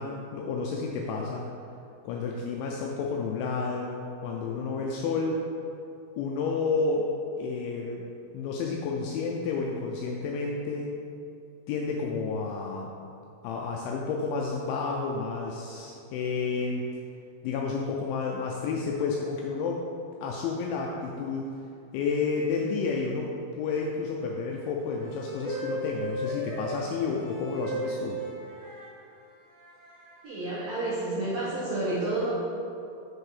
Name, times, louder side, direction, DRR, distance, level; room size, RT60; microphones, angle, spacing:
voice 1, 0.0-1.5 2.0-5.4 6.2-7.1 7.4-8.0 8.3-10.9 11.7-12.9 13.4-16.8 17.4-19.9 20.2-21.5 21.9-28.2, left 4 dB, 85° left, -1 dB, 2.6 m, -30 dB
sound 1, 25.0-28.9 29.6-30.2, right 1 dB, 70° right, 2.0 m, -36 dB
voice 2, 30.2-32.4, right 2 dB, 85° right, -9 dB, 2.0 m, -30 dB
7.2 x 4.6 x 4.8 m, 2.6 s
omnidirectional pair, 5.8 m